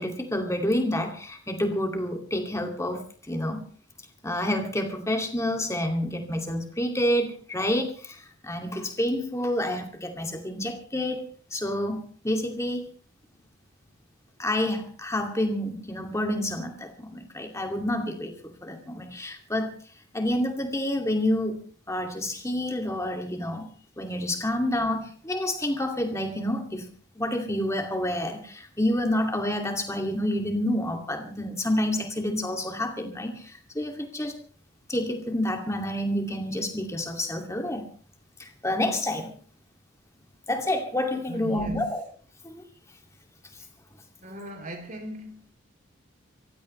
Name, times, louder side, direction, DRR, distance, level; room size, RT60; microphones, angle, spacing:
voice 1, 0.0-3.6 4.2-12.9 14.4-19.7 20.1-21.6 21.9-23.7 24.0-26.9 27.2-34.4 34.9-37.9 38.4-39.3 40.5-42.0 42.4-42.7, left 1 dB, 15° left, 2.5 m, -28 dB
voice 2, 41.3-41.8 44.2-45.4, equal, 40° right, 3.1 m, -38 dB
27.0 x 15.5 x 3.3 m
head